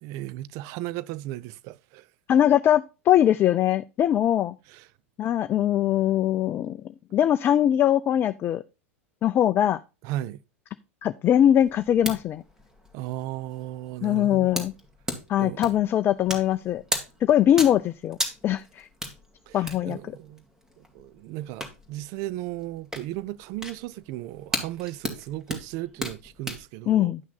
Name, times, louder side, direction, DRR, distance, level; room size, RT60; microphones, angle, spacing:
voice 1, 0.0-2.1 4.7-4.9 10.0-10.4 12.9-14.6 15.4-15.6 19.5-20.4 20.8-27.1, right 15 dB, 45° right, 0.5 m, -36 dB
voice 2, 2.3-4.5 5.2-8.6 9.2-9.8 11.0-12.4 14.0-14.7 15.3-16.8 17.2-18.2 18.4-18.9 19.5-20.0 26.9-27.2, left 11 dB, 30° left, 0.4 m, -22 dB
sound 1, 11.5-26.6, equal, 10° right, 2.3 m, -37 dB
10.5 x 5.9 x 4.1 m
figure-of-eight pair, 90°, 7 cm